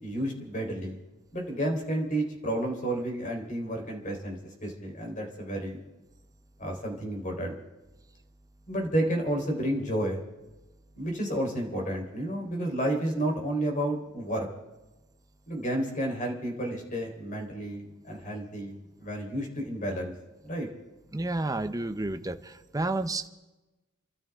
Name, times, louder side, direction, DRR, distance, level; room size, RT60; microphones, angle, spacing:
voice 1, 0.0-1.0 1.3-5.8 6.6-7.6 8.7-10.2 11.0-14.5 15.5-20.1 20.4-20.7, right 1 dB, 35° left, 1 dB, 3.9 m, -31 dB
voice 2, 21.1-23.3, right 2 dB, 15° right, 8 dB, 0.7 m, -31 dB
29.5 x 12.5 x 3.6 m, 1.1 s
head